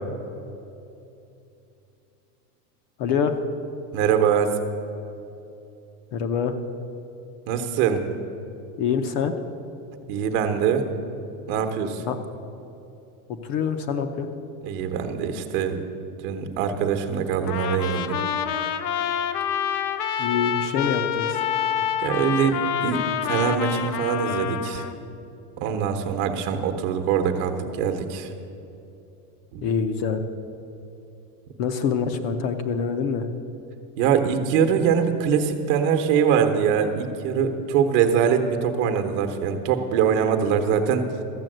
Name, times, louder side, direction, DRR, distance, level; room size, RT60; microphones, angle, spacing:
voice 1, 3.0-3.4 6.1-6.5 8.8-9.3 12.0-12.2 13.3-14.3 20.2-21.4 29.6-30.2 31.6-33.3, left 6 dB, 40° left, 7 dB, 0.7 m, -25 dB
voice 2, 3.9-4.5 7.5-8.1 10.1-10.8 11.5-12.0 14.6-15.8 16.2-18.2 22.0-24.9 25.6-28.3 29.5-29.7 34.0-41.1, right 7 dB, 50° right, 6 dB, 1.1 m, -23 dB
Trumpet, 17.5-24.9, left 9 dB, 80° left, 0.9 m, -27 dB
13.5 x 7.0 x 7.8 m, 2.8 s
supercardioid pair, 170°, 46 cm